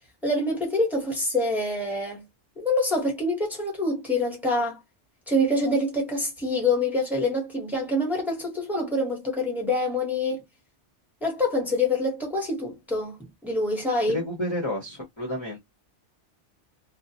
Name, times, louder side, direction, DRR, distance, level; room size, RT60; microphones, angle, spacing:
voice 1, 0.2-2.2 2.6-4.8 5.3-10.4 11.2-13.2 13.4-14.2, left 1 dB, ahead, 0.9 m, -26 dB
voice 2, 14.1-15.6, left 1 dB, 25° left, 0.8 m, -30 dB
2.3 x 2.2 x 2.7 m
omnidirectional pair, 1.2 m